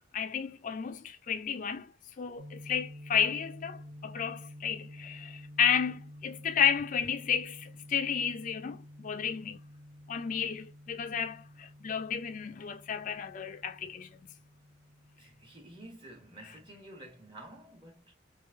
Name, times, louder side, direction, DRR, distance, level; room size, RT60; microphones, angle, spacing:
voice 1, 0.1-1.9 2.2-9.6 10.1-14.1, left 8 dB, 40° left, 0.4 m, -32 dB
sound 1, 2.4-15.8, left 1 dB, 55° right, 0.7 m, -50 dB
voice 2, 15.2-18.1, right 1 dB, 25° right, 1.2 m, -50 dB
3.1 x 2.6 x 2.5 m
head